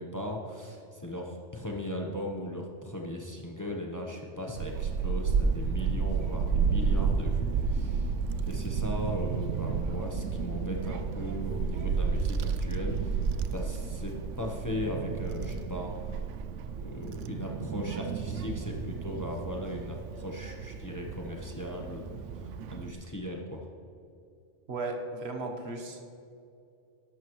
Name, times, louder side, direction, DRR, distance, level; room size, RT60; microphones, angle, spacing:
voice 1, 0.0-8.1 8.4-13.3 13.5-15.9 16.8-23.7, left 1 dB, 15° left, 0 dB, 0.9 m, -38 dB
Child speech kid speaking / Wind, 4.6-22.9, right 5 dB, 85° right, 0.9 m, -31 dB
voice 2, 24.7-26.0, right 2 dB, 65° right, 3 dB, 1.4 m, -35 dB
13.0 x 11.0 x 3.1 m, 2.6 s
omnidirectional pair, 1.2 m